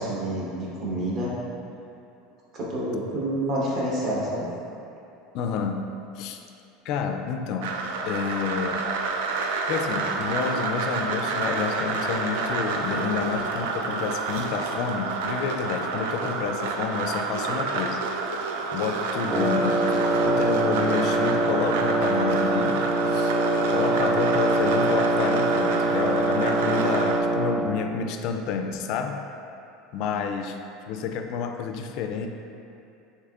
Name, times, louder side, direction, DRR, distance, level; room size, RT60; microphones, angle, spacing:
voice 1, 0.0-1.3 2.5-4.5, right 1 dB, 40° right, -6 dB, 1.1 m, -28 dB
voice 2, 5.3-5.9 6.2-6.4 6.8-7.8 8.1-8.9 9.7-18.0 18.7-23.3 23.7-29.2 29.9-30.6 30.9-32.3, left 6 dB, 55° left, 6 dB, 0.3 m, -29 dB
sound 1, 7.6-27.2, right 4 dB, 85° right, 0.3 m, -29 dB
Wind instrument woodwind instrument, 19.3-27.8, right 2 dB, 15° right, 0.4 m, -24 dB
6.5 x 2.9 x 2.4 m, 2.7 s
supercardioid pair, 140°, 0 cm